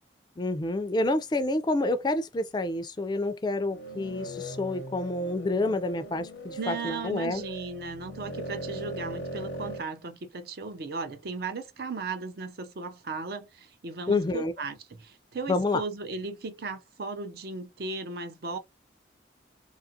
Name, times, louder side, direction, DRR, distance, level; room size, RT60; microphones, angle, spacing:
voice 1, 0.4-7.4 14.1-14.5 15.5-15.8, left 2 dB, 25° left, 0.3 m, -28 dB
sound 1, 3.6-9.8, right 1 dB, 85° left, 0.6 m, -39 dB
voice 2, 6.6-18.6, right 3 dB, 55° right, 0.5 m, -36 dB
2.8 x 2.4 x 2.6 m
head